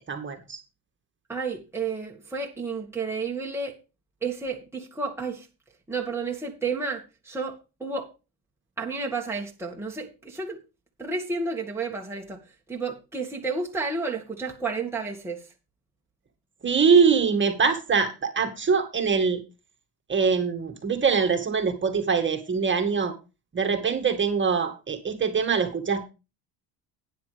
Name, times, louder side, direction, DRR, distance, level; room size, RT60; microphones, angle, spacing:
voice 1, 0.1-0.6 16.6-19.4 20.1-23.1 23.5-26.0, right 5 dB, 25° right, 5 dB, 2.0 m, -23 dB
voice 2, 1.3-3.7 4.2-5.5 5.9-8.1 8.8-10.6 11.0-12.4 12.7-15.4, right 4 dB, 5° right, -1 dB, 2.0 m, -31 dB
11.5 x 9.7 x 3.4 m, 0.29 s
supercardioid pair, 110°, 43 cm